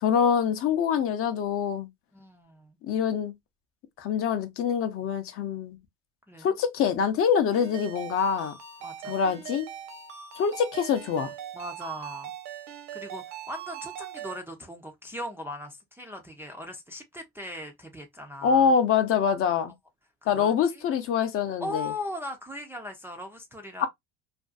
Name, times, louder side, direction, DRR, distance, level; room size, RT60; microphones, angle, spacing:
voice 1, 0.0-1.9 2.8-3.3 4.0-5.8 6.4-8.5 9.1-9.7 10.4-11.3 18.4-19.7 20.3-21.9 23.8-23.9, left 7 dB, 45° left, 0.6 m, -25 dB
voice 2, 2.1-2.8 6.3-6.5 8.8-9.2 11.5-12.3 12.9-18.7 20.2-20.8 21.6-23.9, left 1 dB, 5° right, 0.4 m, -39 dB
Ringtone, 7.5-14.4, right 8 dB, 65° right, 0.8 m, -41 dB
2.5 x 2.2 x 2.3 m
supercardioid pair, 110°, 32 cm